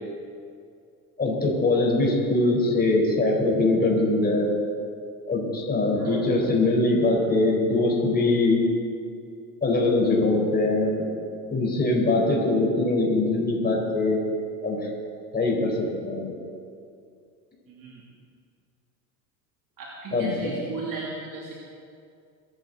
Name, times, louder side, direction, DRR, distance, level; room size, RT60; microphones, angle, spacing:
voice 1, 1.2-4.5 5.3-8.6 9.6-11.1 11.5-14.2 14.6-14.8 15.3-16.3 20.1-20.5, left 2 dB, 20° left, -1 dB, 4.3 m, -22 dB
voice 2, 17.7-18.0 19.8-21.5, right 3 dB, 45° right, -4 dB, 2.9 m, -36 dB
23.0 x 11.0 x 4.0 m, 2.4 s
hypercardioid pair, 75°, 46 cm